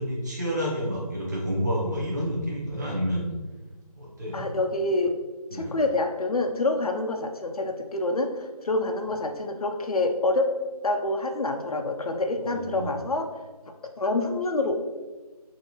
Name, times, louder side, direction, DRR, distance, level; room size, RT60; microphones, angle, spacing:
voice 1, 0.0-3.2 4.0-4.5 5.5-5.7 12.4-12.9, equal, 30° right, -4 dB, 0.8 m, -29 dB
voice 2, 4.3-5.2 5.5-10.5 10.8-13.3 14.0-14.7, left 2 dB, 65° left, 4 dB, 0.5 m, -27 dB
6.5 x 2.7 x 2.9 m, 1.3 s
figure-of-eight pair, 165°, 20 cm